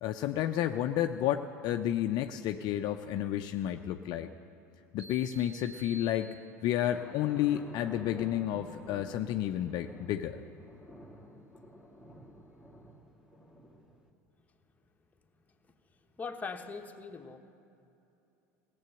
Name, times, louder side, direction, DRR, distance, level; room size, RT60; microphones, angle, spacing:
voice 1, 0.0-4.3 4.9-6.3 6.6-10.4, left 11 dB, 50° left, 7 dB, 0.5 m, -31 dB
sound 1, 5.0-6.9, right 1 dB, 70° right, 2.0 m, -51 dB
sound 2, 6.9-14.1, equal, 10° right, 2.0 m, -51 dB
voice 2, 16.2-17.4, left 4 dB, 15° left, 3 dB, 1.1 m, -40 dB
17.0 x 7.7 x 7.8 m, 2.8 s
hypercardioid pair, 80°, 9 cm